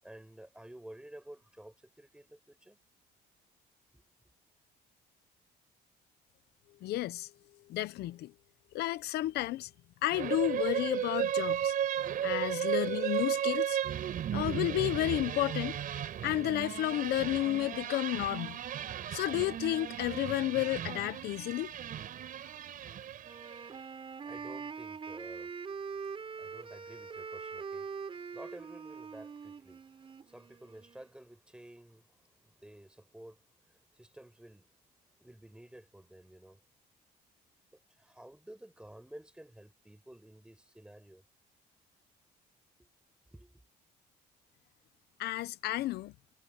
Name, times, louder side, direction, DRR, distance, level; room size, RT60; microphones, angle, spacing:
voice 1, 0.0-2.8 3.9-4.0 23.6-34.7 35.2-36.6 37.7-41.2 42.8-42.9 43.3-43.6, right 1 dB, 5° right, 7.9 m, -53 dB
voice 2, 6.8-7.3 7.7-8.3 8.7-9.7 10.0-11.7 12.2-13.8 14.3-15.8 16.2-18.6 19.1-21.7 45.2-46.1, left 15 dB, 75° left, 0.8 m, -32 dB
sound 1, 10.1-23.7, right 10 dB, 55° right, 4.3 m, -35 dB
Wind instrument woodwind instrument, 23.2-31.1, right 5 dB, 30° right, 3.6 m, -43 dB
cardioid pair, 110°, 17 cm